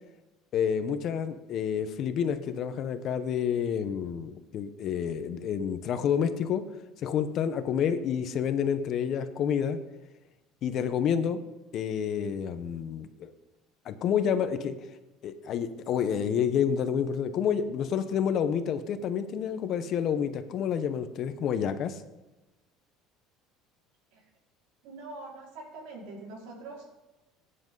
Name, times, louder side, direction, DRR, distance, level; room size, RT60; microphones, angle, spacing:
voice 1, 0.5-6.6 7.0-9.8 10.6-11.4 11.7-13.3 13.8-14.7 15.2-22.0, left 8 dB, 45° left, 9 dB, 1.1 m, -29 dB
voice 2, 24.8-26.8, right 3 dB, 75° right, -2 dB, 5.1 m, -43 dB
17.0 x 10.0 x 4.1 m, 1.0 s
cardioid pair, 140°, 0 cm